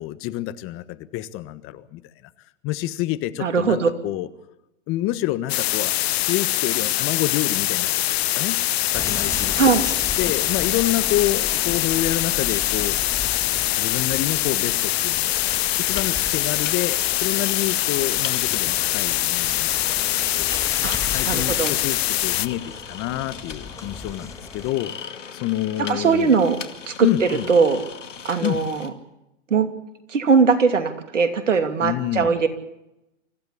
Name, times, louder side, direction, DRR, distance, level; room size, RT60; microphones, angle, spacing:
voice 1, 0.0-2.0 2.6-4.3 4.9-9.6 10.2-13.0 13.7-19.7 20.4-24.9 25.4-26.4 27.0-27.5 28.4-28.6 31.8-32.3, left 15 dB, 35° left, 14 dB, 1.4 m, -28 dB
voice 2, 3.4-3.9 9.6-9.9 20.8-21.0 21.3-21.7 25.8-26.6 26.9-27.8 28.2-28.9 29.5-29.7 30.1-32.5, right 5 dB, 80° right, 8 dB, 2.9 m, -20 dB
sound 1, 5.5-22.5, left 15 dB, 55° left, 1.0 m, -23 dB
sound 2, 8.9-24.7, left 3 dB, 10° left, 2.1 m, -37 dB
sound 3, 15.2-28.9, left 7 dB, 80° left, 2.4 m, -39 dB
25.5 x 16.0 x 8.5 m, 0.90 s
hypercardioid pair, 110°, 36 cm